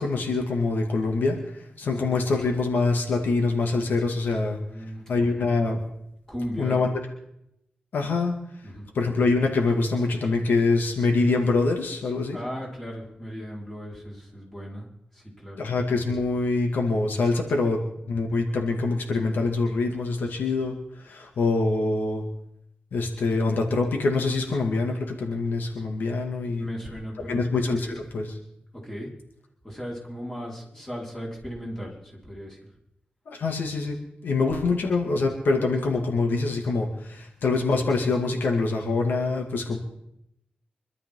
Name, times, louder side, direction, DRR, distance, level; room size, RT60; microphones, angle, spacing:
voice 1, 0.0-4.6 5.1-5.8 6.6-7.0 7.9-8.3 8.9-12.4 15.6-22.3 22.9-26.7 27.3-27.9 28.1-28.3 33.3-39.8, left 3 dB, 85° left, 2 dB, 2.4 m, -25 dB
voice 2, 4.3-5.5 6.3-6.9 8.6-8.9 12.3-14.9 15.1-15.7 26.6-27.5 27.8-28.0 28.7-29.1 29.6-32.6, equal, 15° left, -3 dB, 5.2 m, -37 dB
25.5 x 12.5 x 3.9 m, 0.77 s
wide cardioid pair, 140°, 3 cm